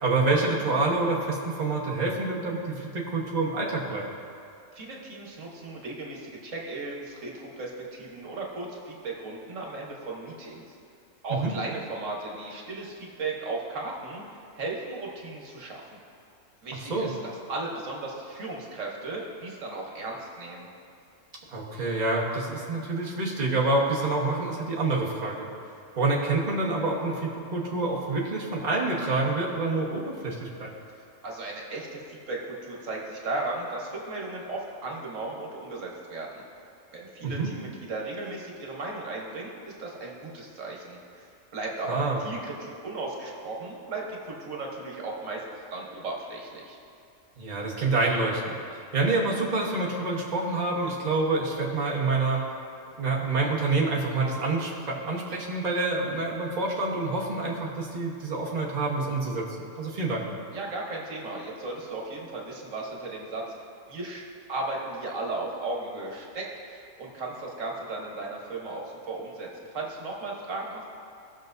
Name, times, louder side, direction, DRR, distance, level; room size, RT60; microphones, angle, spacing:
voice 1, 0.0-4.1 11.4-11.5 16.8-17.1 21.5-25.5 26.0-30.7 37.2-37.5 41.9-42.2 47.4-52.4 53.0-59.5 59.8-60.2, right 3 dB, 35° right, -4 dB, 1.3 m, -27 dB
voice 2, 4.7-10.8 11.2-16.0 16.6-20.7 31.2-36.4 36.9-45.4 45.7-46.8 60.5-63.5 63.9-64.2 64.5-70.8, right 2 dB, 75° right, -2 dB, 1.6 m, -36 dB
17.0 x 6.3 x 2.6 m, 2.5 s
omnidirectional pair, 1.3 m